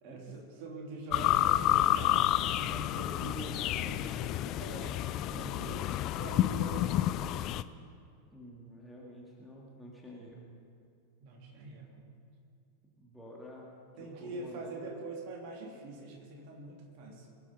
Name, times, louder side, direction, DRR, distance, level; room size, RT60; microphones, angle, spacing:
voice 1, 0.0-7.5 11.2-12.1 14.0-17.3, right 2 dB, 45° right, 0 dB, 3.1 m, -44 dB
sound 1, 1.1-7.6, left 14 dB, 35° left, 0.4 m, -30 dB
voice 2, 8.3-10.5 13.0-13.7 14.0-14.9, equal, ahead, -4 dB, 2.3 m, -50 dB
22.0 x 8.4 x 5.7 m, 2.3 s
figure-of-eight pair, 90°, 0 cm